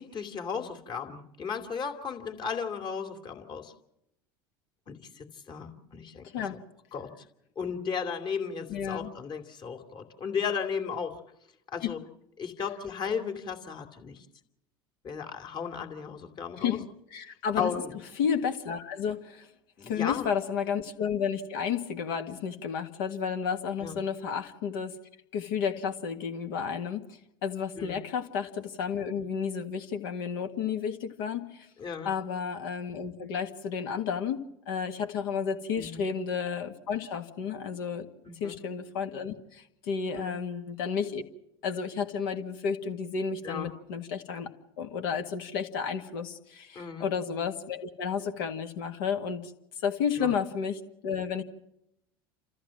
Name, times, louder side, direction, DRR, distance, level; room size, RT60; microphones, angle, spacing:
voice 1, 0.0-3.7 4.9-6.6 6.9-7.1 7.6-11.2 11.7-12.0 12.4-14.2 15.0-16.8 17.6-18.0 19.8-20.3 23.8-24.0 27.8-28.0 31.8-32.1 35.7-36.1 38.2-38.6 40.1-40.4 43.4-43.7 46.7-47.1 50.2-50.3, left 6 dB, 40° left, 6 dB, 2.5 m, -35 dB
voice 2, 8.7-9.1 11.8-11.9 16.6-16.8 17.1-17.8 18.2-19.5 19.8-24.9 25.3-31.7 32.0-34.4 34.7-38.1 38.4-41.2 41.6-44.5 44.8-49.5 49.8-51.4, left 7 dB, 70° left, 5 dB, 1.7 m, -32 dB
28.5 x 14.0 x 7.6 m, 0.85 s
hypercardioid pair, 75°, 12 cm